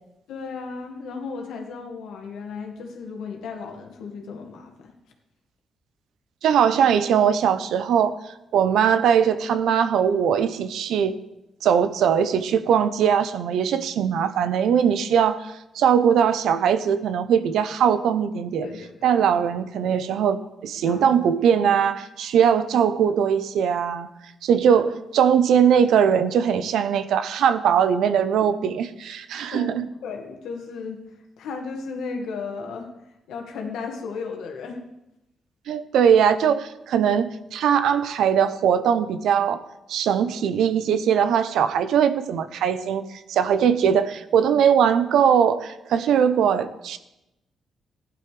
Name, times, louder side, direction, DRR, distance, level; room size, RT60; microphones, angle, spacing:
voice 1, 0.3-4.9 18.6-19.1 20.8-21.2 24.7-24.8 29.5-31.0 31.4-32.9 33.3-34.8, left 5 dB, 85° left, 2 dB, 1.9 m, -35 dB
voice 2, 6.4-8.2 8.5-11.1 11.6-18.7 19.0-24.1 24.4-29.9 35.7-39.6 39.9-47.0, right 8 dB, 80° right, 12 dB, 0.7 m, -20 dB
15.5 x 11.5 x 3.4 m, 0.90 s
cardioid pair, 65°, 0 cm